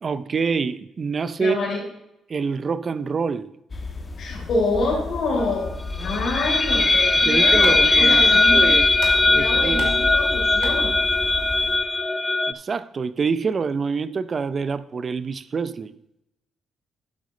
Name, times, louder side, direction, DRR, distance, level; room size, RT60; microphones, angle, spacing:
voice 1, 0.0-1.6 2.3-3.5 6.8-6.9 7.2-8.3 8.5-8.9 9.3-9.9 12.5-15.9, right 5 dB, 40° right, 0.5 m, -26 dB
voice 2, 1.4-1.8 4.2-8.8 9.3-11.0, left 2 dB, 65° left, 3.9 m, -27 dB
sound 1, 3.7-11.8, left 3 dB, 35° left, 1.3 m, -31 dB
sound 2, 6.0-12.5, left 2 dB, 15° left, 0.3 m, -19 dB
sound 3, 7.6-12.4, right 4 dB, 85° right, 2.1 m, -41 dB
11.5 x 7.8 x 3.2 m
cardioid pair, 90°, 0 cm